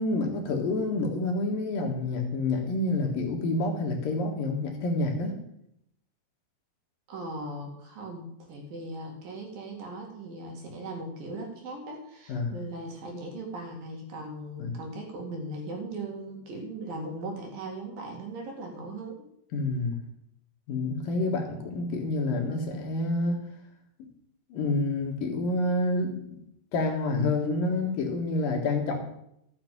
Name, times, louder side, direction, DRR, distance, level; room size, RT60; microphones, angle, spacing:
voice 1, 0.0-5.4 12.3-12.6 14.6-14.8 19.5-20.0 20.7-23.4 24.5-26.4 26.7-29.0, left 2 dB, 65° left, 1 dB, 3.0 m, -28 dB
voice 2, 7.1-19.2, right 2 dB, 60° right, 1 dB, 3.7 m, -38 dB
13.0 x 6.7 x 7.5 m, 0.77 s
omnidirectional pair, 4.8 m